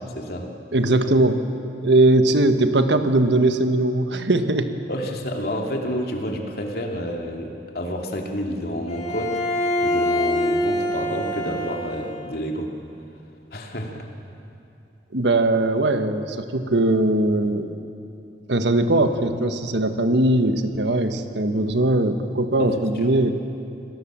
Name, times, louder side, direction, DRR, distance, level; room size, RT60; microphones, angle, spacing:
voice 1, 0.2-0.5 4.9-9.5 9.8-12.7 13.5-14.1 22.6-22.8, equal, 60° left, 2 dB, 2.7 m, -29 dB
voice 2, 0.7-1.4 1.8-4.7 15.1-17.7 18.5-23.3, right 2 dB, 90° right, 8 dB, 1.4 m, -20 dB
Bowed string instrument, 8.9-12.3, left 1 dB, 40° left, 2.7 m, -25 dB
27.0 x 18.5 x 7.5 m, 2.7 s
head